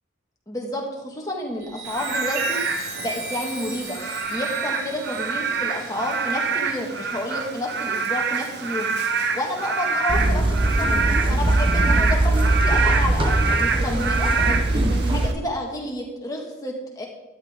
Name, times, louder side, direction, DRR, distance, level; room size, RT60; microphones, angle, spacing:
voice 1, 0.5-10.9 11.3-12.2 12.6-17.1, left 1 dB, 20° left, -1 dB, 2.1 m, -30 dB
Chime, 1.5-7.5 8.0-8.3, right 2 dB, 85° right, 4.5 m, -36 dB
Frog / Rain, 1.9-15.3, right 4 dB, 55° right, 1.0 m, -26 dB
sound 1, 10.1-15.3, right 2 dB, 25° right, 1.0 m, -21 dB
12.5 x 11.5 x 3.8 m, 1.0 s
head